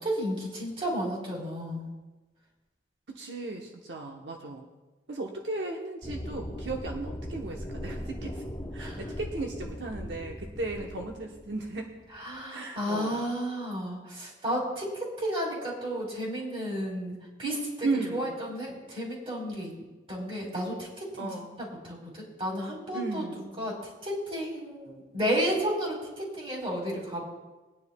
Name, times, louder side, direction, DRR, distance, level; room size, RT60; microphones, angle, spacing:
voice 1, 0.0-1.9 8.8-9.0 12.1-19.7 20.1-21.3 21.6-23.8 24.0-27.2, equal, 30° right, -3 dB, 3.6 m, -32 dB
voice 2, 3.1-4.7 5.1-8.4 8.7-11.9 12.5-13.1 17.8-18.4 21.2-21.7 22.9-23.5, right 3 dB, 75° right, 1 dB, 1.0 m, -35 dB
sound 1, 6.0-12.3, equal, 25° left, 0.9 m, -39 dB
21.5 x 9.8 x 2.3 m, 1.2 s
head